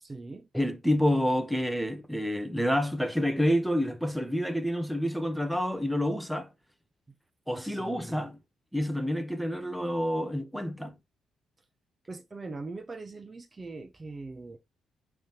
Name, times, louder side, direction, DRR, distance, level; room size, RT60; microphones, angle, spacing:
voice 1, 0.0-0.5 7.1-7.2 7.5-8.2 12.1-14.6, right 3 dB, 25° right, 0.8 m, -42 dB
voice 2, 0.5-6.5 7.5-8.4 8.7-11.0, equal, ahead, 1.0 m, -28 dB
9.2 x 3.5 x 2.9 m
cardioid pair, 90°, 0 cm